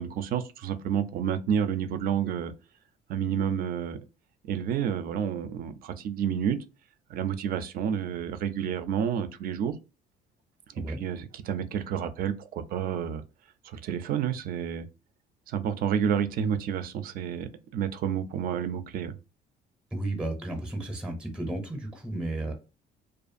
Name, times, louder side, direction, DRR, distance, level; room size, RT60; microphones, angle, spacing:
voice 1, 0.0-2.5 3.1-4.0 4.5-6.6 7.1-9.8 10.8-13.2 13.6-14.9 15.5-19.2, right 8 dB, 60° right, 0.4 m, -30 dB
voice 2, 19.9-22.5, right 2 dB, 5° right, 0.5 m, -33 dB
2.5 x 2.3 x 2.5 m
cardioid pair, 110°, 17 cm